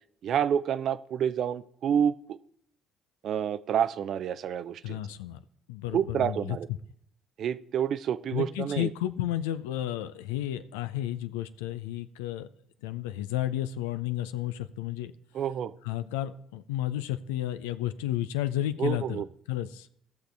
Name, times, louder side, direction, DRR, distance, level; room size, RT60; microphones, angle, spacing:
voice 1, 0.2-2.4 3.2-5.0 5.9-6.7 7.4-8.9 15.3-15.7 18.8-19.3, right 9 dB, 60° right, 14 dB, 0.5 m, -28 dB
voice 2, 4.8-5.4 5.7-6.6 8.3-12.5 12.8-15.1 15.8-19.2 19.5-19.9, left 13 dB, 80° left, 12 dB, 0.5 m, -32 dB
16.5 x 6.4 x 3.4 m, 0.70 s
hypercardioid pair, 55°, 0 cm